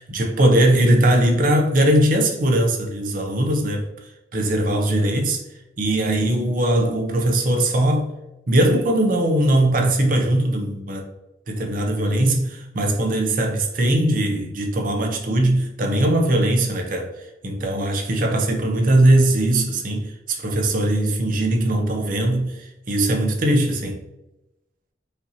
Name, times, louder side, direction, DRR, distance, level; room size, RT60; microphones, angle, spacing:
voice 1, 0.1-3.8 4.3-5.4 5.8-8.1 8.5-11.1 11.5-17.1 17.4-22.6 22.9-24.0, right 1 dB, 50° right, 0.7 m, -20 dB
5.0 x 2.8 x 2.7 m
head